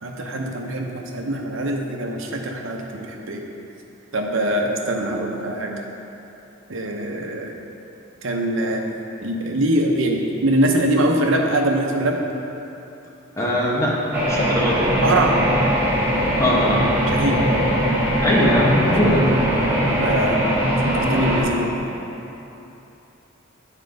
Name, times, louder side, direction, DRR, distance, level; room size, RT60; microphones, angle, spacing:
voice 1, 0.0-3.4 4.1-5.7 6.7-7.5 8.2-8.8 9.2-12.2 15.0-15.4 17.1-17.4 19.9-20.4 20.8-21.8, right 1 dB, 75° right, 2 dB, 0.8 m, -23 dB
voice 2, 13.4-13.9 14.3-14.9 16.4-16.8 18.2-19.2, equal, 15° left, -5 dB, 1.1 m, -20 dB
sound 1, 14.1-21.4, equal, 10° right, 1.0 m, -20 dB
7.4 x 4.5 x 5.2 m, 3.0 s
head